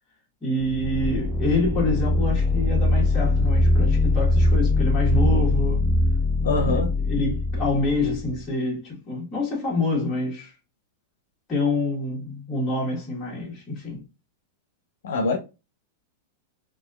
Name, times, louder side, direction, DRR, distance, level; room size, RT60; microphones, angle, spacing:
voice 1, 0.4-5.8 6.6-10.5 11.5-14.0, left 2 dB, 20° left, 1.6 m, -26 dB
sound 1, 0.6-8.4, left 2 dB, 5° left, 0.3 m, -22 dB
voice 2, 6.4-6.9 15.0-15.4, left 3 dB, 85° left, 0.6 m, -23 dB
4.1 x 2.5 x 2.3 m
supercardioid pair, 145°, 0 cm